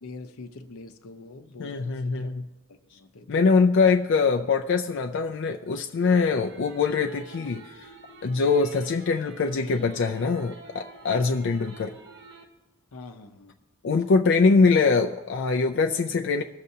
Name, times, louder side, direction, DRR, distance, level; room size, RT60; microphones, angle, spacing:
voice 1, 0.0-2.3 2.7-3.5 12.9-13.5, left 3 dB, 85° left, 0.7 m, -44 dB
voice 2, 1.6-2.4 3.3-7.6 8.2-11.9 13.8-16.4, left 4 dB, 55° left, 0.4 m, -23 dB
sound 1, 6.0-12.4, right 2 dB, 55° right, 1.0 m, -48 dB
19.5 x 6.7 x 2.8 m
head